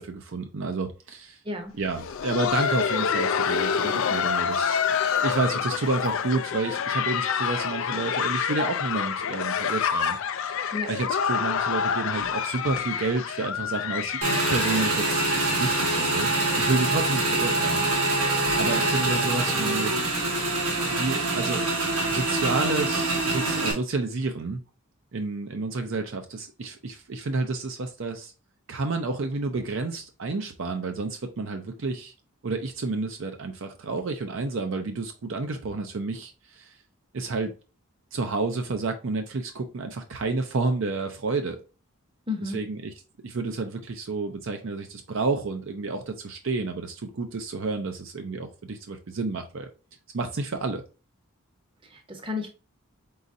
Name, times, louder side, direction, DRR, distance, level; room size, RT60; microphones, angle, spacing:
voice 1, 0.0-1.4 1.8-4.8 5.2-10.2 10.5-16.3 16.6-17.9 18.6-19.9 20.9-21.6 22.1-24.6 25.1-28.3 28.7-32.1 32.4-36.7 37.1-37.5 38.1-41.6 42.4-42.9 43.2-49.7 50.1-50.8, right 3 dB, 55° right, 0.5 m, -30 dB
voice 2, 1.4-1.8 10.7-11.0 18.6-18.8 42.3-42.6 51.8-52.5, left 3 dB, 25° right, 0.8 m, -32 dB
Laughter, 1.8-17.5 17.8-17.9 18.5-18.6 19.1-19.3 20.4-20.5, left 7 dB, 60° left, 0.3 m, -28 dB
Motorcycle / Engine, 14.2-23.7, right 2 dB, 75° right, 1.3 m, -25 dB
4.0 x 3.9 x 2.6 m
head